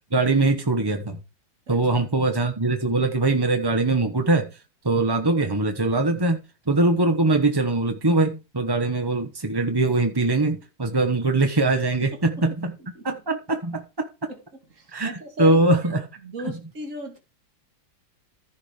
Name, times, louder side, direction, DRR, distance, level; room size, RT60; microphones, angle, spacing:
voice 1, 0.1-1.2 1.7-4.5 4.8-6.4 6.7-12.7 13.0-14.1 14.9-15.1 15.4-16.0 16.4-16.5, right 2 dB, 20° right, 0.7 m, -22 dB
voice 2, 1.7-2.1 12.0-12.2 12.9-13.1 14.3-14.4 14.7-15.6 16.2-17.2, right 1 dB, 40° right, 2.9 m, -37 dB
14.5 x 5.1 x 4.8 m
omnidirectional pair, 2.1 m